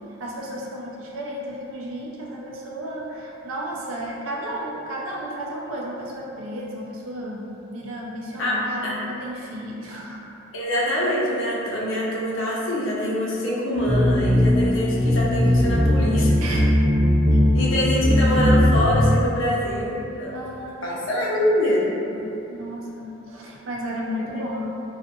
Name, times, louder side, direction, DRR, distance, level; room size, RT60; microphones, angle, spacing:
voice 1, 0.2-10.2 16.4-16.7 20.3-21.3 22.1-24.7, equal, 90° right, -3 dB, 0.4 m, -33 dB
voice 2, 10.5-16.4 17.5-20.3 20.8-21.8 24.5-24.6, left 1 dB, 85° left, -5 dB, 0.6 m, -24 dB
sound 1, 13.8-19.1, left 1 dB, ahead, 0.5 m, -19 dB
2.5 x 2.4 x 2.6 m, 2.8 s
head